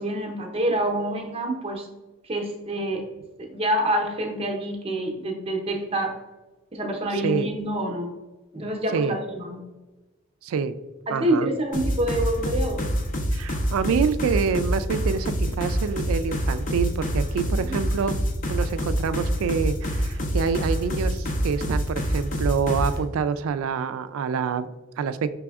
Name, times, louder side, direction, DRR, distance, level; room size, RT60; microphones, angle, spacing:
voice 1, 0.0-1.9 2.2-3.0 3.4-6.2 6.7-8.1 8.5-9.6 11.1-12.9 17.5-17.8, right 1 dB, 25° right, 2 dB, 0.7 m, -27 dB
voice 2, 10.4-10.7 11.1-11.5 13.3-18.1 18.5-25.3, right 6 dB, 85° right, 11 dB, 0.3 m, -26 dB
sound 1, 11.7-23.0, equal, 40° left, 0.5 m, -26 dB
6.0 x 3.3 x 2.3 m, 1.2 s
head